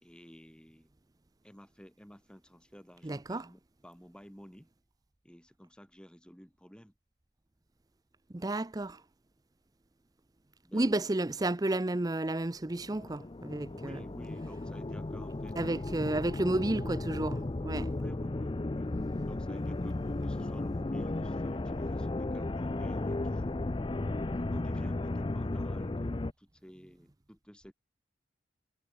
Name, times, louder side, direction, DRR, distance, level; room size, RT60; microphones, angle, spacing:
voice 1, 0.0-0.9 1.4-4.7 5.2-6.9 10.6-10.9 13.7-16.3 18.0-18.9 19.3-23.7 24.3-27.7, equal, 5° left, 2.9 m, -53 dB
voice 2, 3.0-3.4 8.3-9.0 10.7-14.0 15.6-17.9, right 2 dB, 20° right, 0.6 m, -32 dB
sound 1, 12.7-26.3, left 2 dB, 25° left, 0.5 m, -35 dB
head